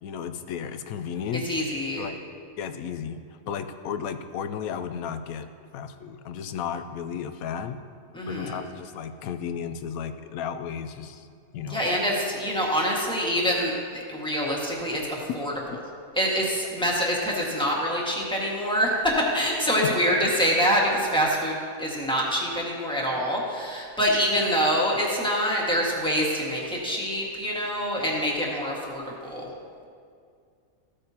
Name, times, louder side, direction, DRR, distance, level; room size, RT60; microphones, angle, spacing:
voice 1, 0.0-1.5 2.0-2.2 2.6-3.2 3.5-7.8 8.2-11.3 11.5-11.8, left 7 dB, 90° left, 10 dB, 1.0 m, -34 dB
voice 2, 1.4-2.1 8.1-8.6 11.7-15.5 16.1-29.5, equal, 5° left, -4 dB, 1.6 m, -25 dB
14.5 x 8.5 x 2.8 m, 2.3 s
omnidirectional pair, 1.5 m